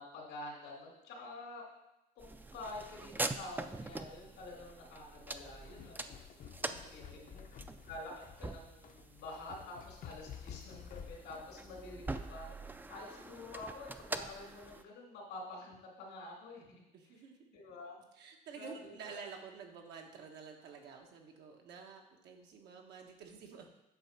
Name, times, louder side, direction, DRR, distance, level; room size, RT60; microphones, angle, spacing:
voice 1, 0.0-1.6 2.1-6.2 6.8-7.4 7.9-16.7 17.0-17.2 17.5-18.0 18.6-19.2, left 2 dB, 85° left, -1 dB, 2.6 m, -48 dB
sound 1, 2.2-14.8, right 2 dB, 10° right, 0.4 m, -44 dB
sound 2, 5.7-11.5, left 8 dB, 55° left, 0.7 m, -52 dB
voice 2, 6.6-7.4 16.9-17.4 18.1-23.7, right 6 dB, 80° right, 2 dB, 1.3 m, -50 dB
8.1 x 4.1 x 5.9 m, 0.88 s
cardioid pair, 110°, 17 cm